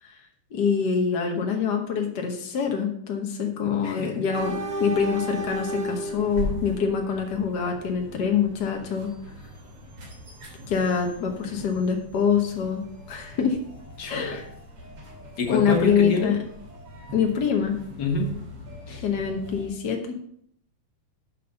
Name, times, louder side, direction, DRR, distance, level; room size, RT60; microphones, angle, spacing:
voice 1, 0.5-9.1 10.7-12.8 13.1-13.6 14.1-14.4 15.5-16.4 17.1-17.8 19.0-20.2, left 6 dB, 85° left, 3 dB, 0.9 m, -25 dB
voice 2, 3.8-4.2 14.0-14.4 15.4-16.3 18.0-18.3 18.9-19.0, left 2 dB, 45° left, 2 dB, 1.6 m, -27 dB
sound 1, 4.3-19.7, right 1 dB, 55° right, 3.8 m, -38 dB
10.5 x 4.3 x 6.7 m, 0.68 s
omnidirectional pair, 3.5 m